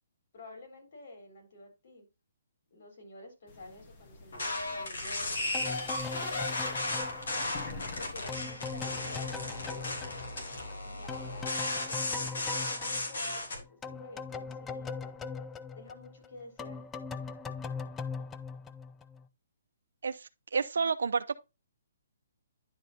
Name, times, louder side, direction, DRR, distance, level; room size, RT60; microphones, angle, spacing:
voice 1, 0.3-2.1 2.7-6.3 7.9-10.1 10.8-15.0 15.7-16.8, left 2 dB, 55° left, 4.0 m, -50 dB
sound 1, 3.5-8.2 8.5-9.1, left 3 dB, 30° left, 1.4 m, -47 dB
sound 2, 4.3-13.6, left 2 dB, 85° left, 3.2 m, -35 dB
sound 3, 5.5-10.8 11.1-19.3, left 5 dB, 10° left, 0.4 m, -41 dB
voice 2, 20.0-21.3, right 5 dB, 85° right, 0.7 m, -30 dB
10.5 x 5.2 x 2.8 m
hypercardioid pair, 165°, 0 cm